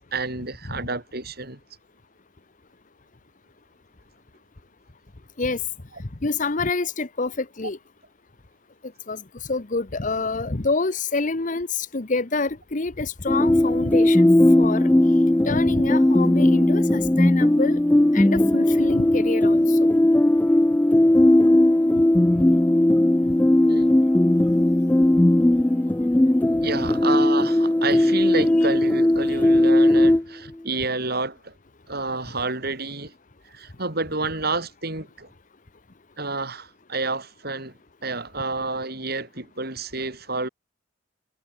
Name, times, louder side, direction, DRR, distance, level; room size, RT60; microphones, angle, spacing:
voice 1, 0.0-1.6 23.6-23.9 26.6-31.5 31.9-33.1 33.5-35.3 36.2-40.5, right 3 dB, 55° right, 7.5 m, -29 dB
voice 2, 6.0-7.8 9.1-9.2 9.5-14.3 14.6-14.9 15.4-17.8 18.1-19.9 22.3-22.5 23.3-23.4 30.0-30.1, left 3 dB, 40° left, 1.1 m, -27 dB
sound 1, 13.3-30.2, left 1 dB, 10° left, 0.3 m, -18 dB
head